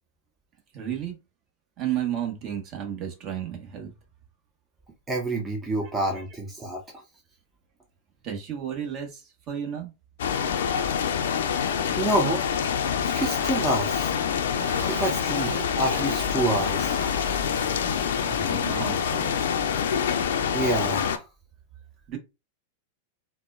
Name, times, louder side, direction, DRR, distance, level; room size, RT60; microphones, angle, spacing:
voice 1, 0.7-1.2 1.8-3.9 5.8-6.2 8.2-9.9 11.6-12.1 18.2-19.3 22.1-22.2, right 9 dB, 45° right, 1.1 m, -33 dB
voice 2, 5.1-7.0 12.0-12.7 13.0-14.1 14.9-17.0 20.5-21.2, right 1 dB, 15° right, 0.7 m, -28 dB
sound 1, 10.2-21.2, left 7 dB, 75° left, 0.4 m, -26 dB
sound 2, 14.5-19.5, right 6 dB, 80° right, 0.6 m, -41 dB
4.1 x 2.1 x 2.3 m
hypercardioid pair, 100°, 0 cm